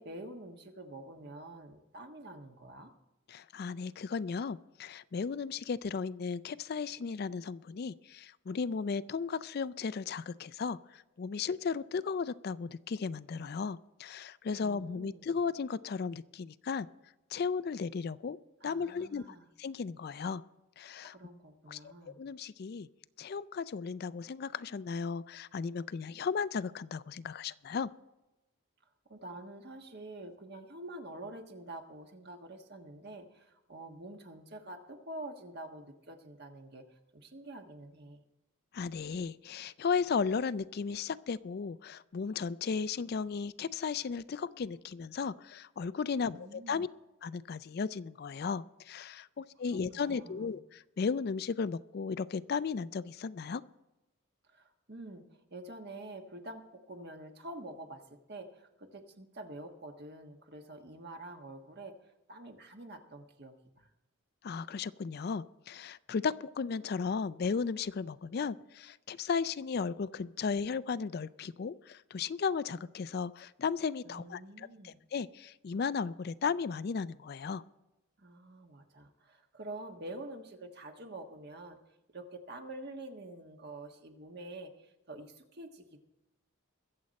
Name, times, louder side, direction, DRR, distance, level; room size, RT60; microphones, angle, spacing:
voice 1, 0.0-2.9 14.6-15.3 18.6-19.5 21.0-22.2 29.0-38.2 46.2-46.9 49.7-50.6 54.5-55.2 55.5-61.9 62.3-63.9 74.0-75.0 78.2-81.8 82.1-86.0, right 2 dB, 50° right, 4 dB, 1.4 m, -47 dB
voice 2, 3.3-16.9 17.3-18.4 18.6-19.2 19.6-20.4 20.8-21.1 21.7-22.9 23.2-27.9 38.7-46.9 47.2-53.6 64.4-77.6, left 5 dB, 50° left, 15 dB, 0.4 m, -35 dB
22.5 x 7.7 x 4.2 m, 0.98 s
head